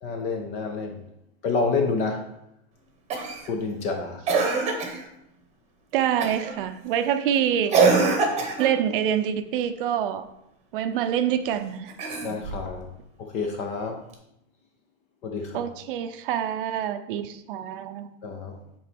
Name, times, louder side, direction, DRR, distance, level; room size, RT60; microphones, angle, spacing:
voice 1, 0.0-1.0 1.4-2.2 3.5-4.2 12.2-12.9 13.2-14.0 15.2-15.7 18.2-18.6, left 4 dB, 20° left, 4 dB, 0.4 m, -28 dB
Cough, 3.1-3.5 4.3-5.0 6.2-6.5 7.7-8.8 11.9-12.7 14.1-14.2, right 4 dB, 20° right, 1.0 m, -23 dB
voice 2, 5.9-7.7 8.6-10.2 10.7-11.9 15.5-18.1, right 9 dB, 45° right, 10 dB, 0.6 m, -26 dB
8.4 x 4.0 x 6.0 m, 0.81 s
supercardioid pair, 170°, 37 cm